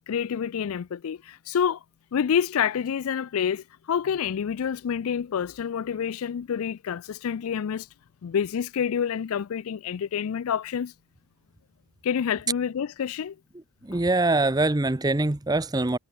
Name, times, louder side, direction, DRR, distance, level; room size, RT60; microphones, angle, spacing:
voice 1, 0.0-1.8 2.1-7.9 8.2-10.9 12.0-13.4 13.9-14.0, left 7 dB, 70° left, 0.4 m, -28 dB
voice 2, 13.8-16.0, right 2 dB, 20° right, 0.7 m, -23 dB
head